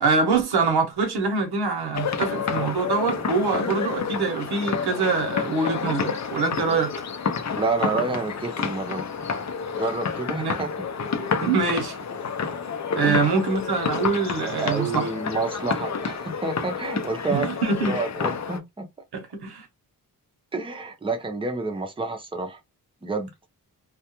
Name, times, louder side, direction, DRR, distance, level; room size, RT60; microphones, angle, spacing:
voice 1, 0.0-6.9 10.3-10.6 11.2-12.0 13.0-15.1 17.3-18.0 19.1-19.7, right 4 dB, 80° right, 0.9 m, -24 dB
sound 1, 1.9-18.6, left 6 dB, 45° left, 0.5 m, -29 dB
voice 2, 7.6-9.1 9.8-10.7 13.0-13.2 14.6-17.5 17.8-18.9 20.5-22.6 23.0-23.3, right 3 dB, 15° right, 0.6 m, -28 dB
2.3 x 2.2 x 2.9 m
wide cardioid pair, 105°, 39 cm